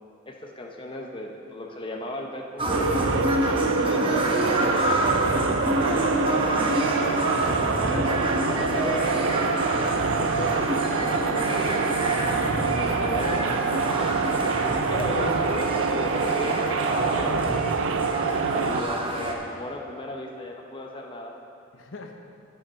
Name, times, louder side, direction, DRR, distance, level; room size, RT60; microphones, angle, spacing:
voice 1, 0.3-2.9 3.4-4.3 6.3-7.1 7.6-8.1 8.5-9.7 10.1-10.7 11.2-11.9 12.4-17.8 18.5-21.4, left 1 dB, 25° left, 0 dB, 0.8 m, -36 dB
sound 1, 2.6-19.3, right 1 dB, 25° right, 1.0 m, -28 dB
sound 2, 2.7-18.8, right 5 dB, 65° right, 0.5 m, -26 dB
voice 2, 3.9-5.8 21.7-22.1, left 2 dB, 65° left, 4 dB, 0.9 m, -40 dB
10.5 x 8.9 x 5.6 m, 2.6 s
head